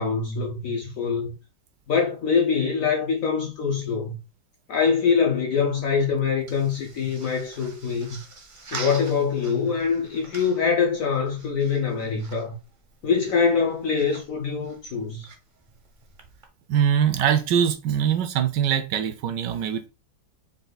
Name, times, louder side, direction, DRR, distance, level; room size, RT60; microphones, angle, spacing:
voice 1, 0.0-1.3 1.9-4.2 4.7-8.2 8.7-12.6 13.0-15.3, left 6 dB, 60° left, 0.9 m, -24 dB
sound 1, 5.6-16.5, right 4 dB, 45° right, 0.6 m, -45 dB
voice 2, 16.7-19.9, right 9 dB, 75° right, 1.1 m, -22 dB
5.2 x 2.5 x 3.8 m
omnidirectional pair, 2.1 m